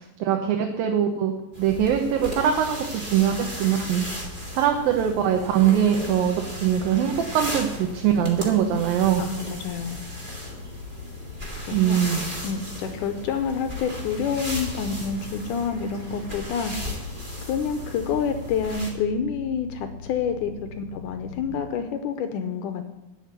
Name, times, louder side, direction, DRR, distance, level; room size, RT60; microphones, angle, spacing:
voice 1, 0.0-4.0 4.5-9.2 11.7-12.2, right 9 dB, 85° right, 3 dB, 2.7 m, -22 dB
sound 1, 1.5-18.9, left 1 dB, 20° right, 1.7 m, -36 dB
sound 2, 2.4-21.5, left 5 dB, 60° left, 2.4 m, -42 dB
voice 2, 9.2-10.0 11.7-12.0 12.4-16.7 17.5-22.9, left 6 dB, 75° left, 7 dB, 2.0 m, -28 dB
11.0 x 6.4 x 8.2 m, 0.93 s
omnidirectional pair, 4.1 m